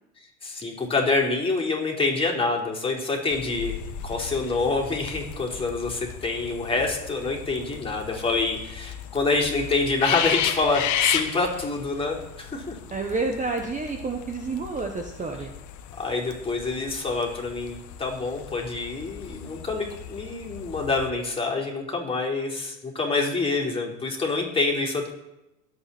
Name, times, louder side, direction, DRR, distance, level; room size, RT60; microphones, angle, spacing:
voice 1, 0.4-3.7 4.0-12.8 16.0-25.1, left 3 dB, 15° left, -1 dB, 4.3 m, -26 dB
sound 1, 3.3-21.1, left 10 dB, 50° left, 1.7 m, -34 dB
voice 2, 12.9-15.5, right 3 dB, 20° right, 4 dB, 1.4 m, -29 dB
22.5 x 8.6 x 4.4 m, 0.91 s
supercardioid pair, 115°, 38 cm